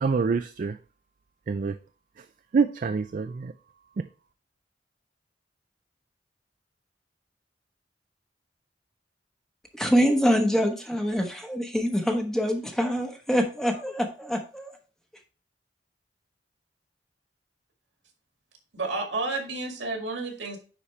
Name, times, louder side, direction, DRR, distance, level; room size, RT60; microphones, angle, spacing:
voice 1, 0.0-0.8 1.5-1.8 2.5-3.5 4.0-4.1, right 5 dB, 45° right, 0.3 m, -26 dB
voice 2, 9.8-14.7, equal, 5° left, 0.9 m, -25 dB
voice 3, 18.7-20.6, right 3 dB, 80° right, 1.9 m, -31 dB
9.9 x 4.3 x 3.2 m
head